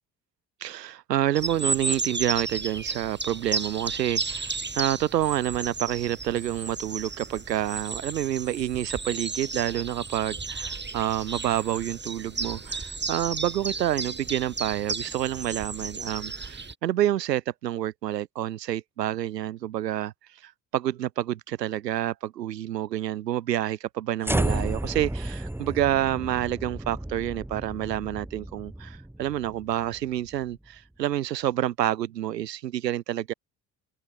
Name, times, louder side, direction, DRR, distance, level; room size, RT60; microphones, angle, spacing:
voice 1, 0.6-20.1 20.4-33.3, right 12 dB, 75° right, 4.6 m, -28 dB
sound 1, 1.3-16.7, right 4 dB, 20° right, 5.1 m, -33 dB
sound 2, 24.2-30.5, right 1 dB, 5° right, 2.0 m, -32 dB
figure-of-eight pair, 45°, 49 cm